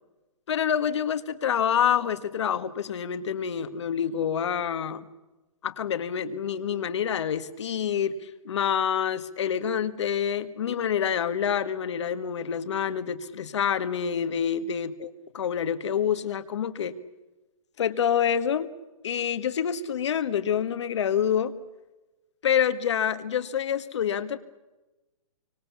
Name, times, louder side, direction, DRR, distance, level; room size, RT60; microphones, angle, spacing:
voice 1, 0.5-5.1 5.6-15.1 15.3-17.0 17.8-18.7 19.0-21.6 22.4-24.4, left 8 dB, 55° left, 12 dB, 1.8 m, -27 dB
26.5 x 25.5 x 7.2 m, 1.1 s
hypercardioid pair, 175°, 18 cm